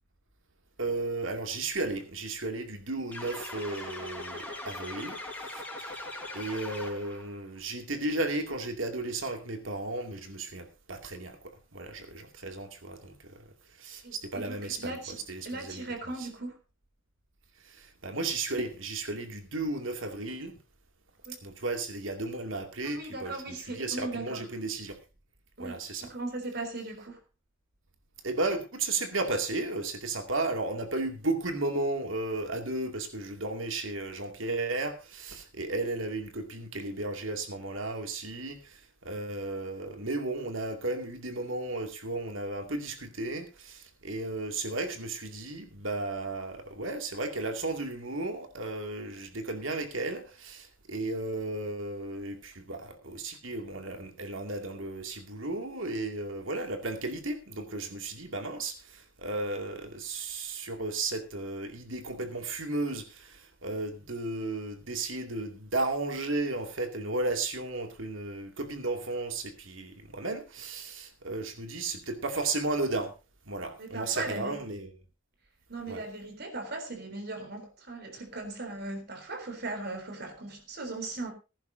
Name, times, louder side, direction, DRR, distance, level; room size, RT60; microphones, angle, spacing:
voice 1, 0.8-5.2 6.3-11.4 11.7-13.4 13.8-15.0 15.3-15.8 16.2-16.3 18.0-20.6 21.4-25.0 25.6-26.1 28.2-38.6 39.0-73.1 73.5-74.9 75.9-76.0, right 2 dB, 75° right, 2.5 m, -34 dB
sound 1, 3.1-7.3, left 2 dB, 10° left, 4.4 m, -40 dB
voice 2, 14.0-15.2 15.4-16.6 21.3-21.4 22.8-24.4 25.6-27.2 73.8-74.6 75.7-81.3, right 2 dB, 50° right, 3.8 m, -38 dB
20.0 x 10.5 x 2.7 m
head